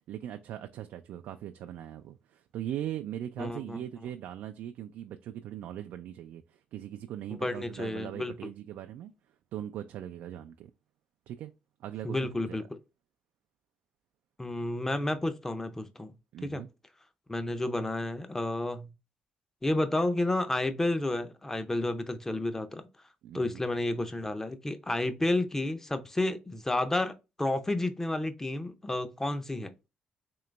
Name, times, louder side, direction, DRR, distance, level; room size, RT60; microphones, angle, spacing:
voice 1, 0.1-9.1 9.5-10.7 11.3-11.5 11.8-12.6 16.3-16.7 23.2-23.6, right 11 dB, 80° right, 0.3 m, -40 dB
voice 2, 3.4-3.8 7.3-8.3 12.0-12.6 14.4-16.1 16.4-16.6 17.3-18.9 19.6-22.9 23.3-29.7, left 2 dB, 15° left, 0.6 m, -31 dB
3.8 x 2.9 x 3.3 m
cardioid pair, 90°, 3 cm